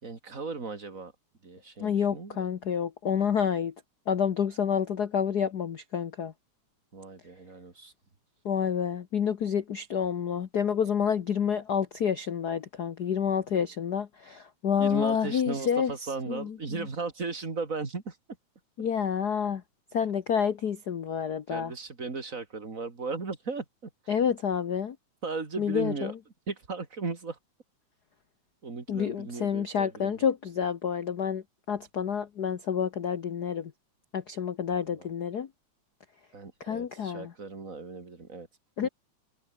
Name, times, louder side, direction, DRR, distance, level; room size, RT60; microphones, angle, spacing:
voice 1, 0.0-1.1 1.4-2.5 6.9-7.9 14.8-18.2 20.0-20.1 21.5-24.1 25.2-26.1 26.5-27.4 28.6-30.3 34.8-35.1 36.3-38.5 38.8-38.9, right 4 dB, 25° right, 2.8 m, -36 dB
voice 2, 1.8-3.7 4.1-6.3 8.4-15.9 16.3-16.5 18.8-19.6 19.9-21.7 24.1-25.0 25.6-26.1 28.9-33.7 34.1-35.5 36.6-37.3 38.8-38.9, left 7 dB, 80° left, 0.9 m, -28 dB
omnidirectional pair, 3.4 m